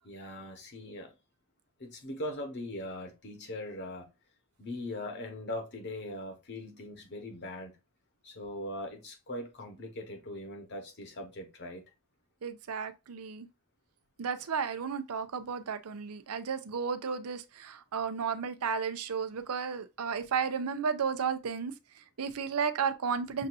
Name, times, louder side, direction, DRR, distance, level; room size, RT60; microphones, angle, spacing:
voice 1, 0.0-1.1 1.8-4.1 4.6-7.7 8.2-11.8, left 1 dB, 50° left, 1.2 m, -40 dB
voice 2, 12.4-13.5 14.2-23.5, right 6 dB, 75° right, 0.5 m, -33 dB
6.4 x 2.7 x 2.5 m
head